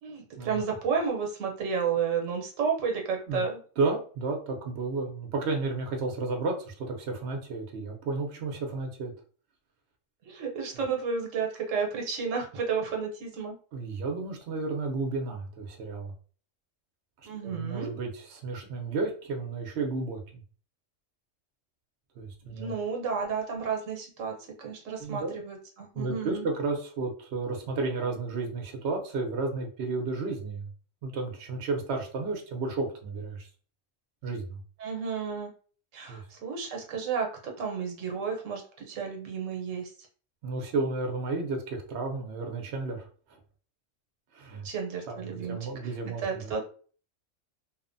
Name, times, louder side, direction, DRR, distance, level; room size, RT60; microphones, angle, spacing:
voice 1, 0.0-3.6 10.2-13.6 17.2-17.9 22.5-26.5 34.8-35.5 35.9-39.9 44.6-45.6 46.2-46.6, right 6 dB, 90° right, 2 dB, 1.1 m, -32 dB
voice 2, 3.8-9.1 13.7-16.1 17.4-20.4 22.2-22.7 25.0-25.3 25.9-30.7 31.0-33.5 34.2-34.6 36.1-36.2 40.4-43.4 44.3-44.7 45.1-46.5, right 3 dB, 65° right, 2 dB, 0.9 m, -32 dB
2.8 x 2.1 x 2.5 m, 0.41 s
omnidirectional pair, 1.3 m